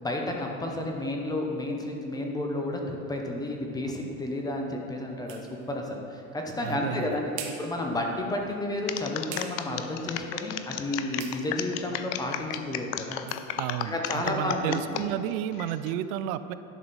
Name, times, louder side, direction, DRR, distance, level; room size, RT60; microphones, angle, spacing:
voice 1, 0.0-13.2 13.8-15.0, left 1 dB, 10° left, 1 dB, 0.5 m, -31 dB
sound 1, 3.5-15.1, right 7 dB, 50° right, 1.1 m, -49 dB
voice 2, 6.6-7.1 13.6-16.5, right 11 dB, 80° right, 13 dB, 0.5 m, -32 dB
sound 2, 8.9-15.0 15.5-15.9, left 12 dB, 60° left, 0.5 m, -33 dB
11.0 x 6.1 x 4.0 m, 2.7 s
supercardioid pair, 150°, 41 cm